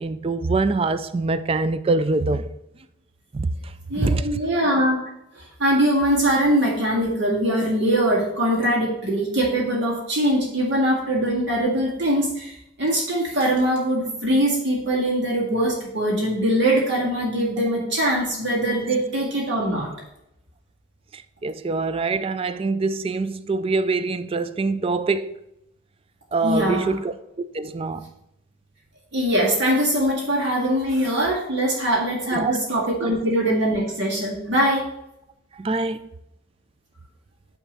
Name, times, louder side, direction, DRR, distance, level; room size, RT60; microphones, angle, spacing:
voice 1, 0.0-2.5 3.3-3.5 3.9-4.2 21.4-25.3 26.3-27.1 27.5-28.0 32.3-32.5 35.6-36.0, right 3 dB, 30° right, 0.4 m, -24 dB
voice 2, 3.9-5.0 5.3-19.9 26.4-27.0 29.1-34.9, right 1 dB, 60° right, 2.1 m, -22 dB
9.2 x 3.6 x 6.6 m
head